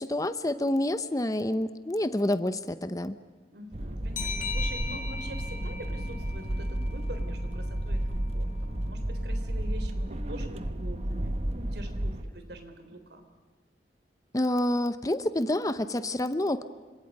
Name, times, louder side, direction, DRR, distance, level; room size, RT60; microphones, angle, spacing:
voice 1, 0.0-3.2 14.3-16.6, left 1 dB, 20° left, 12 dB, 0.8 m, -28 dB
voice 2, 3.5-13.2, right 1 dB, 65° right, 7 dB, 3.7 m, -45 dB
sound 1, 3.7-12.2, right 1 dB, 35° right, 1.0 m, -32 dB
sound 2, 4.2-7.5, left 4 dB, 50° left, 3.5 m, -38 dB
30.0 x 26.5 x 5.5 m, 1.4 s
head